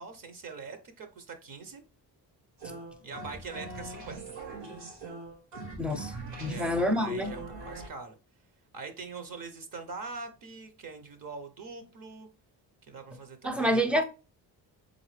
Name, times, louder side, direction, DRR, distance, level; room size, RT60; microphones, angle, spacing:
voice 1, 0.0-1.8 3.0-4.4 6.4-8.1 8.7-12.3 12.9-13.9, right 4 dB, 50° right, 0.8 m, -43 dB
sound 1, 2.6-7.9, right 3 dB, 85° right, 2.2 m, -42 dB
voice 2, 5.8-6.1 6.4-7.3 13.4-14.0, equal, 5° right, 0.5 m, -27 dB
3.9 x 3.5 x 3.1 m
cardioid pair, 110°, 42 cm